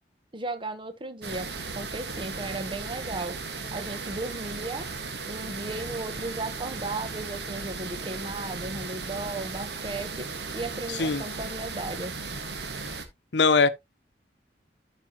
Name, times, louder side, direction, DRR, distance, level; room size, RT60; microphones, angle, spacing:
voice 1, 0.3-1.5 1.7-3.4 3.7-4.9 5.3-10.3 10.5-12.1, right 2 dB, 30° right, 1.0 m, -35 dB
sound 1, 1.2-13.1, right 4 dB, 65° right, 1.6 m, -36 dB
voice 2, 13.3-13.7, left 4 dB, 75° left, 0.8 m, -20 dB
12.0 x 5.0 x 2.9 m
head